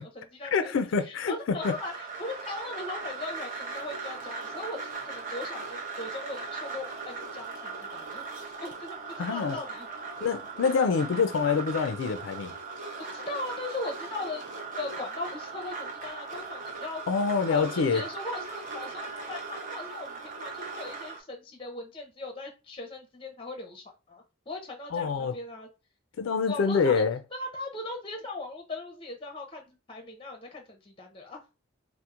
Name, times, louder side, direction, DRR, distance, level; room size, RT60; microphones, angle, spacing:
voice 1, 0.0-4.8 5.0-8.3 8.6-9.9 13.0-14.4 14.8-17.0 17.5-25.7 26.5-27.0 27.3-31.4, left 2 dB, 25° left, 0.6 m, -39 dB
voice 2, 0.5-1.3 1.6-1.7 9.2-9.6 10.2-12.5 17.1-18.0 24.9-25.4 26.2-27.2, left 5 dB, 85° left, 0.4 m, -26 dB
sound 1, 1.6-21.2, right 4 dB, 40° right, 0.7 m, -39 dB
4.3 x 2.0 x 2.4 m
head